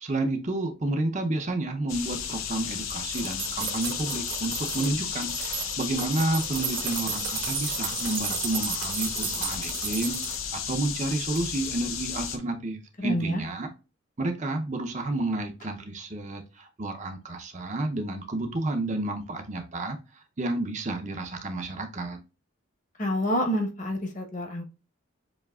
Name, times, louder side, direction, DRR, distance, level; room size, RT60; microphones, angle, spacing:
voice 1, 0.0-13.7 14.2-20.0 20.4-22.2, right 2 dB, 35° right, 0.6 m, -30 dB
sound 1, 1.9-12.4, left 8 dB, 75° left, 0.8 m, -33 dB
sound 2, 2.8-4.9 5.2-10.4 10.8-11.4 11.7-11.8, right 9 dB, 55° right, 1.0 m, -34 dB
voice 2, 13.0-13.4 23.0-24.6, equal, 35° left, 1.0 m, -28 dB
7.2 x 2.8 x 2.3 m
head